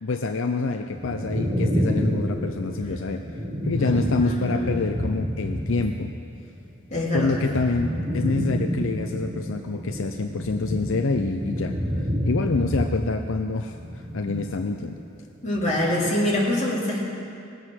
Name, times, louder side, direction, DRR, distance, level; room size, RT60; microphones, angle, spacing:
voice 1, 0.0-3.2 3.6-6.1 7.1-13.8 14.1-15.0, left 3 dB, 75° left, 5 dB, 0.6 m, -27 dB
sound 1, 0.9-6.2 6.5-15.1 15.4-16.1, equal, 25° right, 1.7 m, -29 dB
voice 2, 3.7-4.7 6.9-7.4 15.4-17.0, left 1 dB, 35° left, -6 dB, 3.2 m, -25 dB
20.0 x 7.9 x 6.2 m, 2.5 s
head